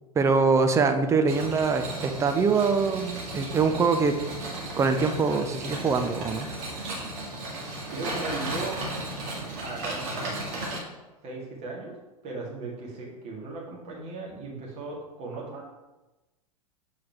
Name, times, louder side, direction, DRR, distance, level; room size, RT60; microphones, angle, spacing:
voice 1, 0.2-4.2 4.8-6.5, right 4 dB, 15° right, 7 dB, 0.5 m, -23 dB
sound 1, 1.3-10.8, right 2 dB, 50° right, 2.0 m, -35 dB
voice 2, 7.9-8.8 9.6-10.4 11.2-11.9 12.2-15.7, right 3 dB, 35° right, -3 dB, 1.9 m, -37 dB
7.4 x 4.7 x 3.5 m, 1.1 s
figure-of-eight pair, 90°, 19 cm